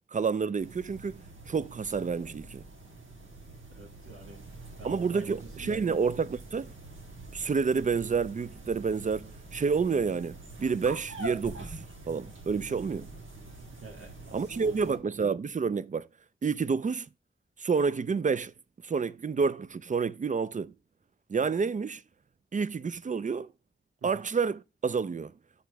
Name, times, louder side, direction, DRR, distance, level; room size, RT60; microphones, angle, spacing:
voice 1, 0.1-2.6 4.8-6.7 7.3-13.1 14.3-16.1 16.4-17.1 17.6-18.5 18.8-20.7 21.3-22.0 22.5-23.5 24.0-25.3, right 5 dB, 35° right, 0.4 m, -29 dB
sound 1, 0.6-15.0, right 2 dB, 65° right, 1.5 m, -45 dB
voice 2, 3.7-4.4 4.8-5.8 13.8-14.8 24.0-24.2, right 3 dB, 90° right, 1.7 m, -46 dB
6.6 x 4.1 x 4.6 m
wide cardioid pair, 80°, 21 cm